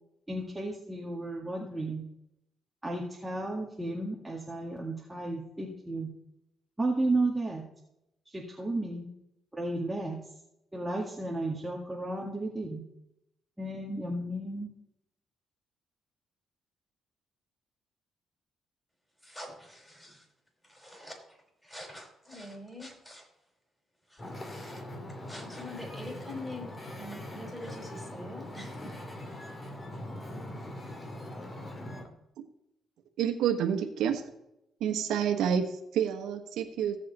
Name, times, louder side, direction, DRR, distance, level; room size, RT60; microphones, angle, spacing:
voice 1, 0.3-2.0 2.8-6.1 6.8-7.6 8.3-9.1 9.5-10.2 10.7-12.8 13.6-14.7, right 2 dB, 10° right, -2 dB, 1.9 m, -33 dB
voice 2, 19.2-20.2 20.7-21.2 21.6-23.3 24.1-24.8 25.3-29.0, left 1 dB, 10° left, 1 dB, 5.2 m, -45 dB
Wind / Ocean, 24.2-32.1, left 1 dB, 30° left, 2.3 m, -42 dB
voice 3, 33.2-34.2 34.8-37.0, right 8 dB, 85° right, 5 dB, 1.2 m, -28 dB
16.0 x 7.5 x 4.2 m, 0.83 s
cardioid pair, 90°, 0 cm